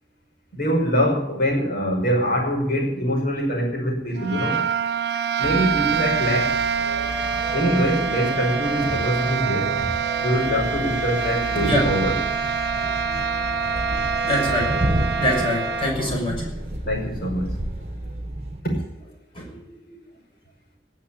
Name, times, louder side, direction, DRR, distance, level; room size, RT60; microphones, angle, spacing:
voice 1, 0.5-4.6 5.4-6.6 7.5-9.9 10.2-12.2 16.9-17.5 18.6-18.8, equal, 55° left, 0 dB, 5.6 m, -23 dB
sound 1, 4.1-16.0, right 6 dB, 65° right, 1.0 m, -25 dB
sound 2, 5.4-18.6, right 1 dB, 40° right, 1.3 m, -32 dB
Guitar, 6.7-16.1, right 2 dB, ahead, 6.7 m, -37 dB
voice 2, 11.5-11.9 12.7-12.9 13.9-14.7 15.2-16.6 19.3-19.6, left 1 dB, 30° left, -1 dB, 6.1 m, -25 dB
19.0 x 7.3 x 8.8 m, 0.84 s
head